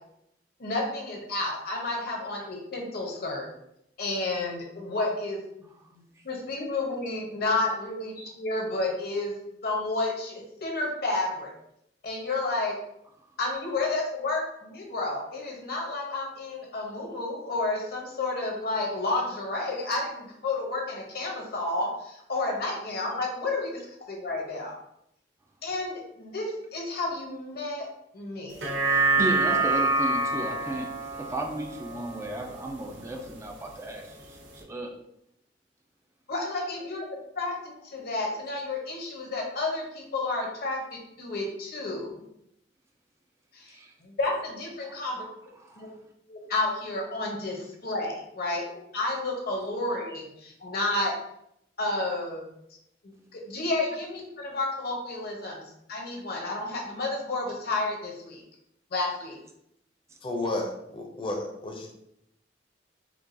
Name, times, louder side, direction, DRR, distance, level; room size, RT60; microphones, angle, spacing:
voice 1, 0.6-3.5 4.0-5.4 5.9-9.3 9.6-11.5 12.0-12.7 13.4-23.8 24.1-24.8 25.6-27.9 28.1-28.5 29.5-29.6 36.3-37.1 37.4-37.5 37.8-42.1 43.5-45.3 45.8-45.9 46.3-48.6 48.9-51.1 51.8-52.4 53.0-55.6 55.9-58.4 58.9-59.4, left 2 dB, 60° left, 0 dB, 0.9 m, -31 dB
sound 1, 28.5-33.1 33.5-33.6, right 3 dB, 80° right, 0.6 m, -27 dB
voice 2, 28.8-30.9 31.2-34.9 43.7-43.9 44.8-45.0 45.6-45.9, right 1 dB, 15° right, 1 dB, 0.3 m, -35 dB
voice 3, 60.2-61.9, left 2 dB, 30° left, 1 dB, 0.6 m, -32 dB
4.5 x 2.3 x 2.6 m, 0.78 s
head